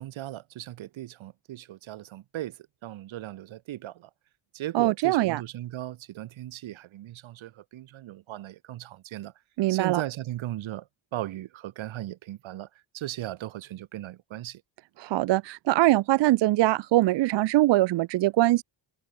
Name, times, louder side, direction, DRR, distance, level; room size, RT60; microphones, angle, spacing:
voice 1, 0.0-4.1 4.5-9.3 9.7-10.9 11.1-12.7 12.9-14.6, right 14 dB, 90° right, 1.5 m, -37 dB
voice 2, 4.7-5.4 9.6-10.0 15.0-18.6, right 16 dB, 65° right, 0.5 m, -22 dB
wide cardioid pair, 155°, 46 cm